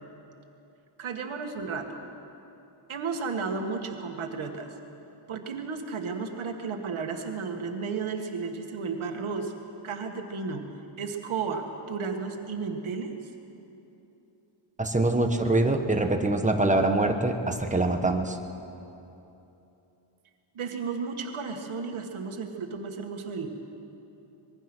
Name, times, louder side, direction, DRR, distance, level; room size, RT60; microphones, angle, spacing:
voice 1, 1.0-2.1 2.9-4.7 5.3-9.5 9.8-10.7 11.0-13.2 20.5-23.5, right 5 dB, 75° right, 3 dB, 2.1 m, -33 dB
voice 2, 14.8-18.4, right 2 dB, 15° right, 4 dB, 1.4 m, -24 dB
25.5 x 21.5 x 6.3 m, 2.9 s
wide cardioid pair, 155°, 49 cm